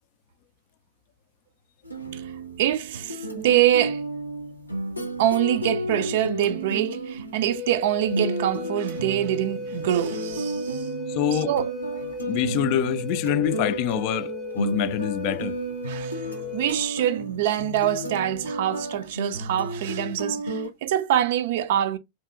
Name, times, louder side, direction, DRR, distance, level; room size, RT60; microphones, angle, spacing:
sound 1, 1.8-7.8 8.1-20.7, right 1 dB, 85° left, 0.6 m, -33 dB
voice 1, 2.6-4.0 5.2-10.9 11.3-11.7 15.9-16.2 16.5-22.0, right 12 dB, 55° right, 0.3 m, -25 dB
Wind instrument woodwind instrument, 7.5-16.8, left 2 dB, ahead, 0.6 m, -35 dB
voice 2, 11.1-11.5 12.3-15.6, left 11 dB, 45° left, 0.3 m, -25 dB
2.7 x 2.6 x 2.5 m
figure-of-eight pair, 90°, 0 cm